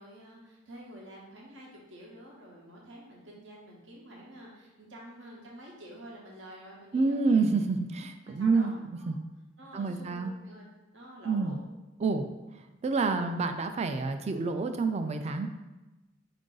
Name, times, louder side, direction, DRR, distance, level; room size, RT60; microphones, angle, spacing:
voice 1, 0.0-7.5 8.4-9.2 9.6-10.7 10.9-11.6, right 1 dB, 75° right, -3 dB, 0.8 m, -48 dB
voice 2, 6.9-9.2 9.7-10.3 11.2-11.6 12.0-12.2 12.8-15.5, right 4 dB, 35° right, 7 dB, 0.3 m, -28 dB
4.6 x 2.5 x 3.8 m, 1.1 s
head